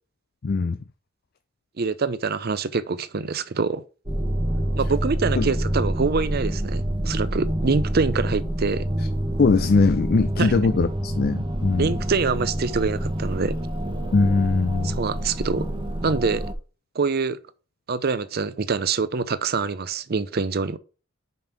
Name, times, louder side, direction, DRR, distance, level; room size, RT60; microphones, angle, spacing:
voice 1, 0.4-0.8 5.4-5.5 9.4-11.9 14.1-15.0, left 4 dB, 50° left, 0.4 m, -21 dB
voice 2, 1.8-3.8 4.8-8.9 10.4-10.5 11.8-13.6 14.8-15.7 16.0-16.5 16.9-17.4 17.9-20.8, right 4 dB, 50° right, 0.6 m, -25 dB
sound 1, 4.1-16.5, right 1 dB, 25° right, 1.1 m, -27 dB
5.4 x 5.3 x 6.0 m
head